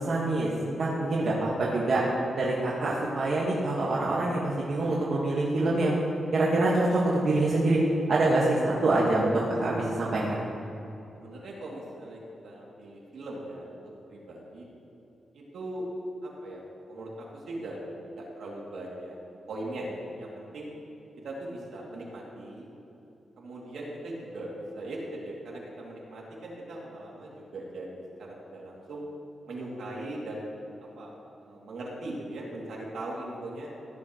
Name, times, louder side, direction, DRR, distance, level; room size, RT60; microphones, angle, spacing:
voice 1, 0.1-2.0 2.3-6.0 6.3-7.8 8.1-10.4, right 2 dB, 60° right, -6 dB, 1.8 m, -25 dB
voice 2, 11.1-13.8 14.1-14.7 15.3-15.8 16.2-16.6 16.9-17.8 18.1-19.2 19.5-20.7 21.2-22.7 23.4-29.0 29.5-30.5 31.0-31.1 31.4-33.7, right 1 dB, 80° right, -4 dB, 2.8 m, -39 dB
16.0 x 11.0 x 3.2 m, 2.9 s
cardioid pair, 95°, 0 cm